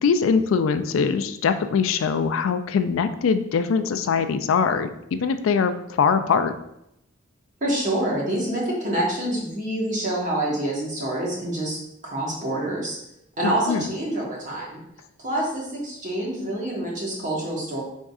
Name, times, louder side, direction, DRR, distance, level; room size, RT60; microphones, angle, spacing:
voice 1, 0.0-6.5 13.4-13.8, left 5 dB, 80° left, 10 dB, 0.3 m, -22 dB
voice 2, 7.6-11.8 12.0-13.0 13.4-14.8 15.2-17.8, right 1 dB, 40° right, -4 dB, 1.2 m, -26 dB
5.3 x 3.6 x 2.3 m, 0.80 s
head